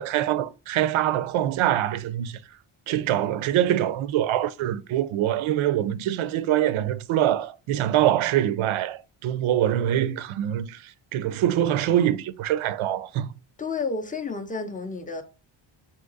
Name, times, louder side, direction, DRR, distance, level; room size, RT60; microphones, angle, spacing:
voice 1, 0.0-2.4 2.9-13.3, right 12 dB, 75° right, 0.6 m, -24 dB
voice 2, 13.6-15.2, left 4 dB, 20° left, 0.4 m, -31 dB
3.8 x 2.8 x 3.9 m
wide cardioid pair, 165°, 49 cm